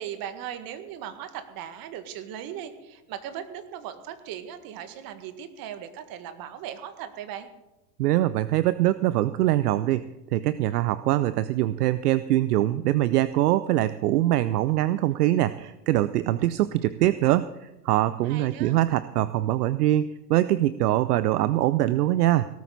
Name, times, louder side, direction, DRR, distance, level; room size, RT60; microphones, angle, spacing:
voice 1, 0.0-7.5 18.2-18.8, right 9 dB, 45° right, 9 dB, 1.9 m, -38 dB
voice 2, 8.0-22.5, right 14 dB, 70° right, 15 dB, 0.7 m, -23 dB
18.0 x 13.0 x 4.0 m, 0.95 s
hypercardioid pair, 90°, 49 cm